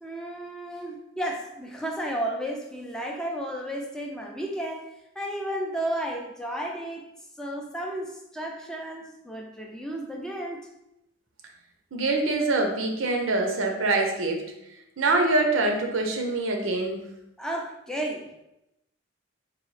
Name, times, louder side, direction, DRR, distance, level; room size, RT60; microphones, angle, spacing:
voice 1, 0.0-4.9 5.2-7.1 7.4-10.6 17.4-18.4, right 1 dB, 5° left, 0 dB, 0.4 m, -33 dB
voice 2, 11.9-14.4 15.0-17.1, right 2 dB, 80° right, 3 dB, 0.7 m, -24 dB
4.0 x 2.7 x 3.2 m, 0.86 s
head